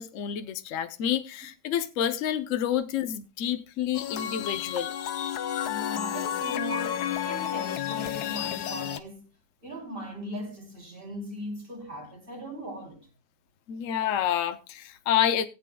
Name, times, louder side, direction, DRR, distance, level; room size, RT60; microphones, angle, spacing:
voice 1, 0.0-4.9 13.7-15.5, left 10 dB, 60° left, 1.0 m, -28 dB
sound 1, 3.9-9.0, left 10 dB, 90° left, 1.3 m, -31 dB
voice 2, 5.6-9.2 9.6-13.1, equal, 35° right, 3.2 m, -39 dB
19.0 x 8.5 x 2.2 m
omnidirectional pair, 1.6 m